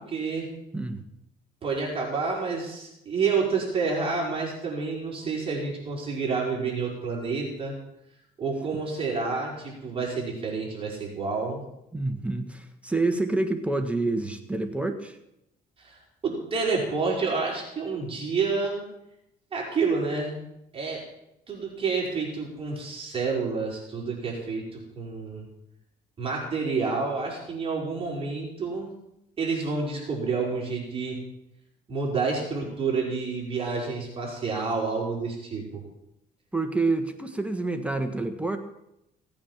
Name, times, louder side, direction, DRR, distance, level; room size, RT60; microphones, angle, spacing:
voice 1, 0.1-0.5 1.6-7.7 8.4-11.6 15.8-16.0 16.2-18.8 19.5-20.4 20.7-21.0 21.5-24.6 24.9-25.4 26.2-28.9 29.4-31.2 31.9-35.6, right 4 dB, 35° right, -3 dB, 5.0 m, -29 dB
voice 2, 11.9-15.2 36.5-38.6, right 2 dB, 5° right, 6 dB, 1.5 m, -28 dB
17.5 x 8.9 x 7.3 m, 0.84 s
cardioid pair, 110°, 17 cm